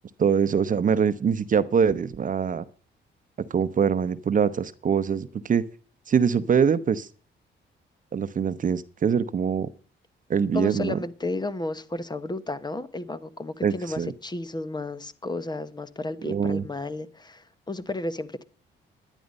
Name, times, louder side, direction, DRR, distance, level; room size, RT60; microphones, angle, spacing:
voice 1, 0.2-2.6 3.5-5.7 6.1-7.1 8.1-9.7 10.3-11.0 13.6-14.1 16.2-16.6, right 7 dB, 40° right, 0.8 m, -23 dB
voice 2, 10.5-18.4, left 2 dB, 20° left, 1.0 m, -33 dB
11.0 x 10.0 x 5.3 m
cardioid pair, 90°, 20 cm